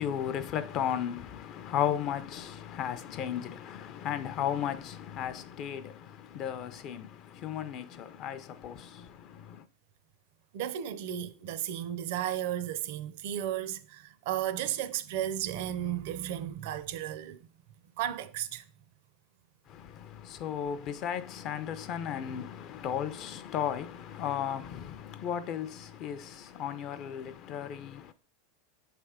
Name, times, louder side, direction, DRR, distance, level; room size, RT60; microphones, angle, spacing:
voice 1, 0.0-9.7 19.7-28.1, left 9 dB, 35° left, 0.4 m, -35 dB
voice 2, 10.5-17.5 18.0-18.6, right 11 dB, 55° right, 0.5 m, -34 dB
7.2 x 3.3 x 4.9 m
supercardioid pair, 160°, 0 cm